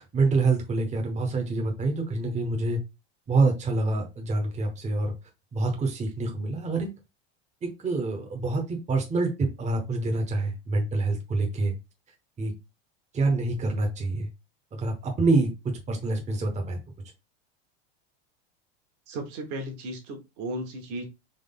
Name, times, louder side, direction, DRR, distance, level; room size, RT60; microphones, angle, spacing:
voice 1, 0.0-2.8 3.3-5.1 5.5-6.9 7.6-11.7 12.4-12.5 13.1-14.3 14.7-16.8, right 3 dB, 20° right, 3 dB, 1.0 m, -26 dB
voice 2, 19.1-21.0, right 1 dB, 55° right, 2 dB, 1.5 m, -35 dB
3.8 x 3.1 x 3.8 m, 0.25 s
supercardioid pair, 130°, 34 cm